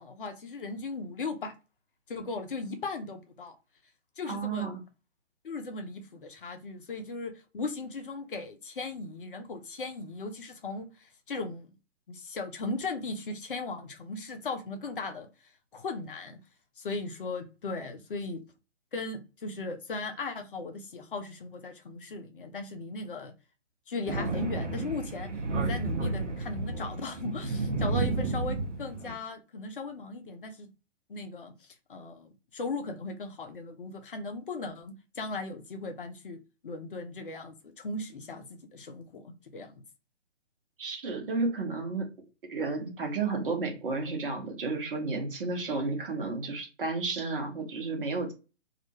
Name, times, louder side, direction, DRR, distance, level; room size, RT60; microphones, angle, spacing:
voice 1, 0.0-1.5 2.1-3.6 4.2-4.7 5.4-11.7 12.1-15.3 15.7-16.4 16.8-18.4 18.9-23.3 23.9-25.3 25.6-30.7 31.1-39.8, left 3 dB, 45° left, 0.6 m, -37 dB
voice 2, 4.2-4.8 40.8-42.1 42.5-48.3, right 3 dB, 50° right, 1.0 m, -32 dB
Thunder, 24.1-29.2, right 3 dB, 80° right, 0.7 m, -31 dB
2.4 x 2.1 x 2.9 m
figure-of-eight pair, 135°, 36 cm